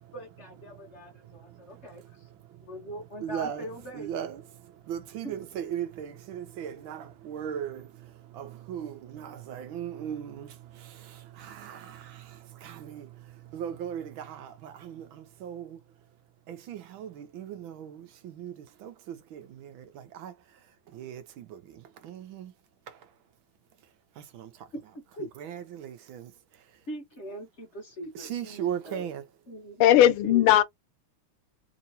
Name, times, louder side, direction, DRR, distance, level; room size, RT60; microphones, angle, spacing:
voice 1, 0.1-2.3 2.6-4.1 5.2-5.3 25.1-25.3 26.9-29.0 29.5-30.4, equal, 40° left, 1.1 m, -41 dB
voice 2, 0.7-2.9 3.2-15.9 16.5-22.5 22.9-23.1 24.1-24.7 25.2-26.9 28.1-29.3, right 9 dB, 75° right, 1.5 m, -39 dB
voice 3, 29.8-30.6, left 12 dB, 90° left, 1.5 m, -18 dB
3.6 x 2.9 x 2.7 m
omnidirectional pair, 2.3 m